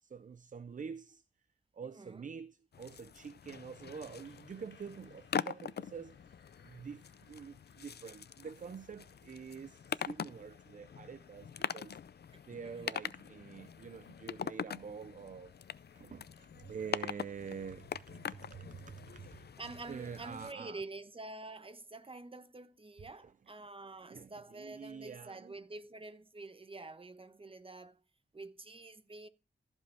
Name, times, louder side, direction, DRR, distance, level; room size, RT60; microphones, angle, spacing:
voice 1, 0.0-1.2 1.7-6.2 6.6-12.0 12.5-15.5 16.0-19.4 19.9-20.8 23.2-23.3 24.1-25.6, right 6 dB, 45° right, 0.5 m, -47 dB
voice 2, 1.8-2.3 12.3-12.8 19.6-28.0 28.3-29.3, right 2 dB, 30° right, 1.0 m, -48 dB
sound 1, 2.7-20.5, left 7 dB, 60° left, 0.5 m, -43 dB
Applause, 3.2-21.1, left 5 dB, 80° left, 2.0 m, -70 dB
15.0 x 5.3 x 5.6 m
wide cardioid pair, 85°, 19 cm